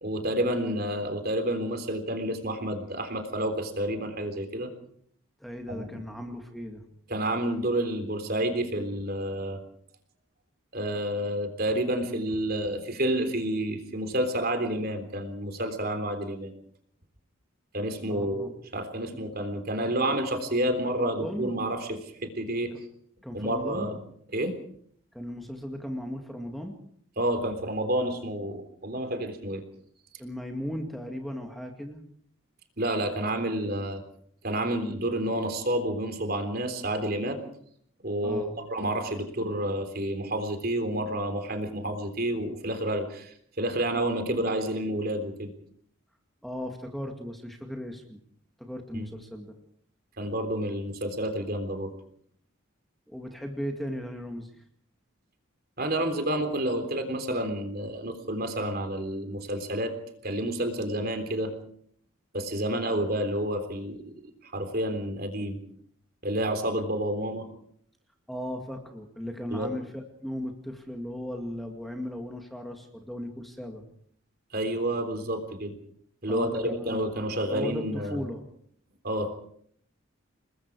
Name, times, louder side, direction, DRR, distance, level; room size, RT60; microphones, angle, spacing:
voice 1, 0.0-4.7 5.7-6.0 7.1-9.6 10.7-16.5 17.7-22.7 23.3-24.0 24.3-24.6 27.2-29.6 32.8-34.0 34.4-37.4 38.0-45.5 48.9-49.1 50.2-51.9 55.8-59.9 60.2-61.5 62.3-64.1 64.4-65.6 66.2-67.5 69.5-69.7 74.5-75.8 76.2-78.3 79.0-79.3, right 1 dB, 45° right, 7 dB, 3.6 m, -29 dB
voice 2, 5.4-6.8 18.1-18.5 19.1-19.3 20.0-20.2 20.9-21.5 23.2-23.9 25.1-26.8 30.2-32.0 38.2-38.5 46.4-48.2 48.6-49.6 53.1-54.5 68.3-73.8 76.3-77.0 77.4-78.4, equal, ahead, 3 dB, 2.1 m, -37 dB
28.5 x 21.0 x 4.8 m, 0.62 s
head